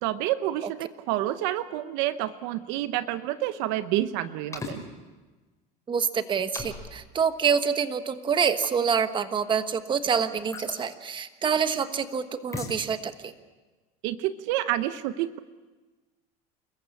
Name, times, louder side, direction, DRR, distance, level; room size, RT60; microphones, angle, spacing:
voice 1, 0.0-4.8 14.0-15.4, right 14 dB, 65° right, 12 dB, 0.9 m, -29 dB
sound 1, 4.5-4.8 6.5-6.9 8.6-8.8 10.5-10.8 12.5-12.8, left 4 dB, 15° left, 5.2 m, -36 dB
voice 2, 5.9-13.3, right 6 dB, 25° right, 10 dB, 1.3 m, -26 dB
28.5 x 14.5 x 8.4 m, 1.3 s
supercardioid pair, 125°, 19 cm